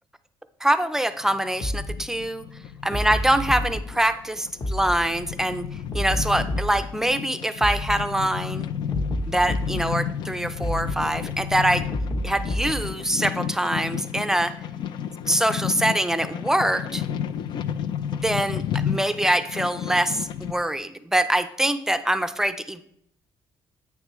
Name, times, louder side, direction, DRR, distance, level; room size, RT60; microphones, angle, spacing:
voice 1, 0.6-2.5 2.8-5.6 5.9-8.7 9.3-11.9 12.2-14.6 15.3-17.0 18.1-22.8, right 1 dB, 5° right, 10 dB, 0.5 m, -24 dB
sound 1, 1.2-20.5, left 8 dB, 65° left, 0.4 m, -32 dB
sound 2, 1.6-1.9 2.9-3.8 4.6-4.9 5.9-6.8 7.6-7.9 8.9-9.8 10.6-10.9 11.9-12.8, left 1 dB, 40° left, 1.2 m, -28 dB
8.7 x 6.5 x 3.1 m, 0.74 s
cardioid pair, 105°, 8 cm